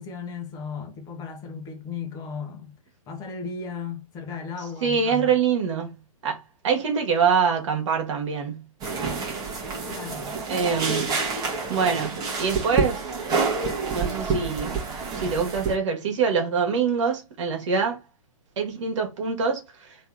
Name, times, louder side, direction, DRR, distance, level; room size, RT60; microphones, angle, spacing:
voice 1, 0.0-2.8 3.1-5.4 9.9-10.4, left 5 dB, 20° left, 1.1 m, -35 dB
voice 2, 4.8-5.9 6.2-8.6 10.5-11.2 11.7-13.1 13.9-14.8 15.2-18.0 18.6-19.6, right 6 dB, 55° right, 1.5 m, -24 dB
sound 1, 8.8-15.7, right 4 dB, 20° right, 1.3 m, -28 dB
3.5 x 3.0 x 3.5 m
figure-of-eight pair, 120°, 19 cm